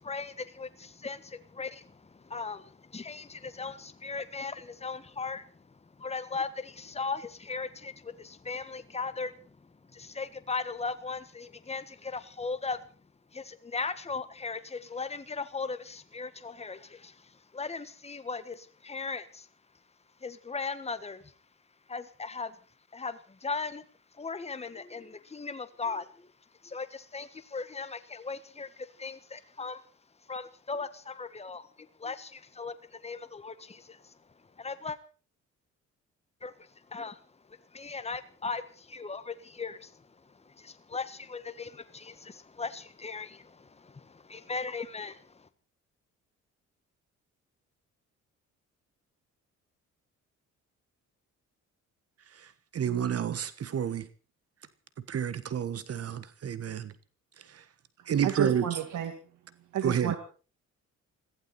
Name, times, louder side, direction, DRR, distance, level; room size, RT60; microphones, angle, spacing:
voice 1, 0.0-5.6 6.0-9.6 9.9-12.8 13.3-19.5 20.2-21.3 21.9-22.6 22.9-23.8 24.1-26.3 26.6-29.8 30.3-34.1 34.6-35.0 36.4-37.2 37.7-45.5, left 4 dB, 20° left, 11 dB, 1.5 m, -38 dB
voice 2, 52.7-54.1 55.1-56.9 57.5-57.6 58.1-58.6 59.8-60.2, right 8 dB, 50° right, 15 dB, 1.3 m, -29 dB
voice 3, 58.0-59.2 59.7-60.2, right 10 dB, 75° right, 7 dB, 2.2 m, -32 dB
22.0 x 15.5 x 4.3 m, 0.38 s
cardioid pair, 90°, 30 cm